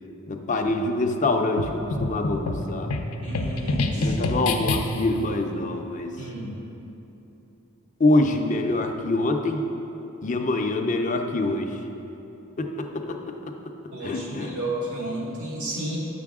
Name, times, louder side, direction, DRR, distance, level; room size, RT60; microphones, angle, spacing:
voice 1, 0.3-2.9 3.9-6.1 8.0-9.7 10.2-11.8 12.6-13.5 14.0-14.5, left 2 dB, 35° left, 4 dB, 0.5 m, -25 dB
sound 1, 1.6-5.2, left 2 dB, 85° left, 0.6 m, -27 dB
voice 2, 3.2-4.2 6.2-6.5 13.9-16.0, right 1 dB, 85° right, -4 dB, 1.9 m, -32 dB
9.5 x 6.8 x 3.6 m, 3.0 s
head